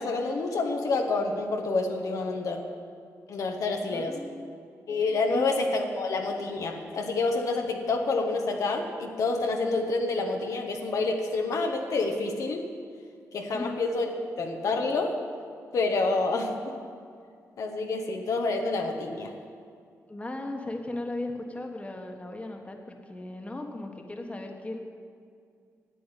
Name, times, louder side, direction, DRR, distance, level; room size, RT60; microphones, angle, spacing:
voice 1, 0.0-2.7 3.3-4.2 4.9-12.7 13.3-14.1 14.4-15.2 15.7-16.8 17.6-19.3, left 3 dB, 70° left, 2 dB, 1.1 m, -28 dB
voice 2, 3.8-4.5 5.3-5.4 13.5-13.7 20.1-24.8, left 2 dB, 20° left, 3 dB, 1.4 m, -37 dB
9.1 x 8.5 x 9.2 m, 2.3 s
cardioid pair, 65°, 6 cm